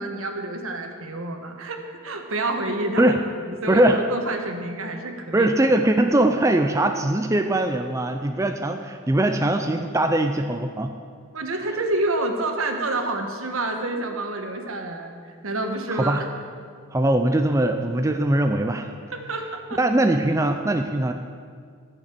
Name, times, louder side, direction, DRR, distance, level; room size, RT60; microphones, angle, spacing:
voice 1, 0.0-5.5 11.3-16.2 19.1-19.8, right 2 dB, 75° right, 4 dB, 1.4 m, -28 dB
voice 2, 3.7-4.0 5.3-10.9 15.9-16.2 16.9-18.9 19.8-21.1, right 1 dB, 15° right, 5 dB, 0.4 m, -21 dB
13.5 x 6.6 x 7.7 m, 2.1 s
head